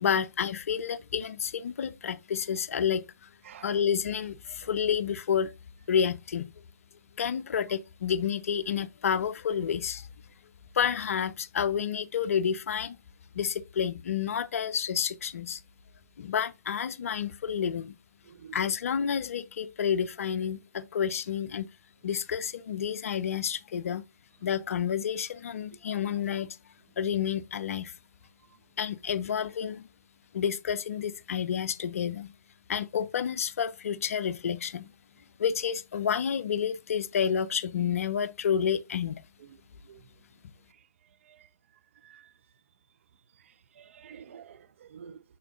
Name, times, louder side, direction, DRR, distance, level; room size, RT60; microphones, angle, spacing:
voice 1, 0.0-3.3 3.6-5.5 5.9-6.5 7.2-10.1 10.7-13.0 13.3-15.6 16.2-17.9 18.5-21.7 22.0-24.0 24.4-26.6 27.0-27.9 28.8-29.9 30.3-32.3 32.7-34.9 35.4-39.2, left 8 dB, 50° left, 0.5 m, -29 dB
voice 2, 3.4-3.8 18.3-18.6 39.9-40.0 41.3-41.5 42.0-42.3 43.8-45.2, right 8 dB, 45° right, 0.5 m, -49 dB
6.7 x 6.2 x 2.4 m
figure-of-eight pair, 130°, 10 cm